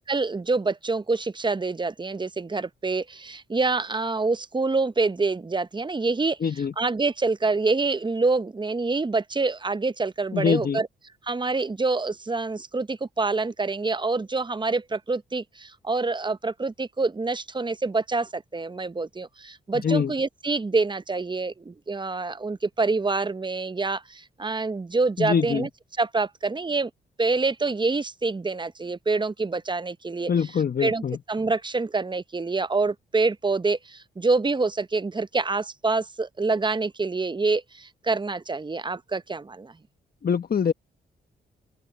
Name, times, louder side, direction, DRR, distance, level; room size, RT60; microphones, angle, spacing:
voice 1, 0.0-6.4 6.8-10.9 11.2-25.7 26.0-26.9 27.2-30.3 30.8-31.0 31.3-39.7, right 3 dB, 25° right, 0.8 m, -26 dB
voice 2, 6.4-6.7 10.3-10.8 19.8-20.1 25.2-25.7 30.3-31.2 40.2-40.7, left 6 dB, 50° left, 1.2 m, -24 dB
open air
supercardioid pair, 50°, 20 cm